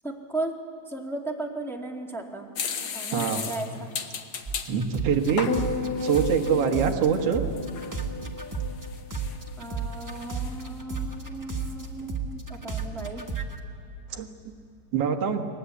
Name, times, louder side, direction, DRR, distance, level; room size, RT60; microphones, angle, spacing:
voice 1, 0.0-0.5 0.9-2.5 2.8-3.9 9.6-13.3, right 2 dB, ahead, -1 dB, 1.6 m, -36 dB
sound 1, 2.6-4.7 5.2-6.7 7.1-7.2 7.6-8.0 8.5-9.7 10.0-10.6, left 6 dB, 55° left, 1.5 m, -36 dB
voice 2, 3.1-3.4 4.7-5.5 6.0-7.4 14.1-14.3 14.9-15.5, right 7 dB, 60° right, 2 dB, 2.4 m, -24 dB
sound 2, 4.5-7.1 7.3-13.6, right 4 dB, 20° right, 0.5 m, -33 dB
sound 3, 5.5-9.9 10.2-10.6, left 4 dB, 30° left, 2.2 m, -34 dB
30.0 x 21.0 x 8.4 m, 2.4 s
omnidirectional pair, 3.4 m